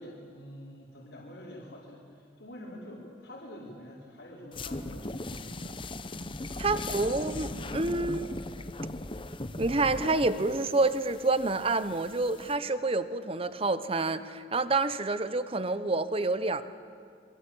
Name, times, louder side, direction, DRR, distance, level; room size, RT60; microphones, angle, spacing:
voice 1, 0.0-5.8 6.7-8.4, left 1 dB, 75° left, -6 dB, 5.2 m, -46 dB
sound 1, 4.5-12.6, left 2 dB, 30° left, 0.9 m, -39 dB
voice 2, 6.6-7.5 7.7-8.3 9.6-16.6, right 3 dB, 30° right, 12 dB, 1.0 m, -28 dB
26.5 x 24.0 x 8.8 m, 2.2 s
head